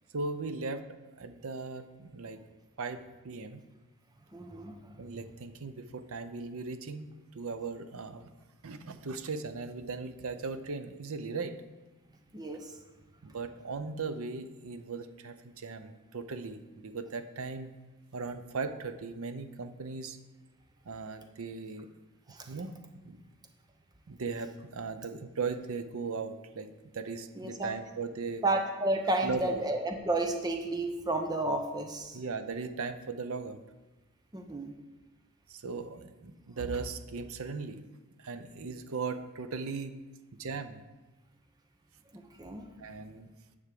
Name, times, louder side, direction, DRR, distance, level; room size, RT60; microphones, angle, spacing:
voice 1, 0.1-0.8 1.2-2.4 2.8-3.6 5.0-8.3 8.6-11.6 13.2-17.7 18.1-20.2 20.9-21.9 22.5-22.7 23.0-23.2 24.1-28.4 29.2-29.6 32.1-33.6 35.5-37.8 38.2-39.9 40.4-40.8 42.8-43.3, right 4 dB, 65° right, 9 dB, 0.6 m, -38 dB
voice 2, 4.3-4.7 12.3-12.7 22.3-22.5 27.4-27.7 28.4-32.2 34.3-34.7 42.1-42.7, right 2 dB, 20° right, 4 dB, 0.7 m, -32 dB
9.7 x 3.6 x 6.7 m, 1.1 s
head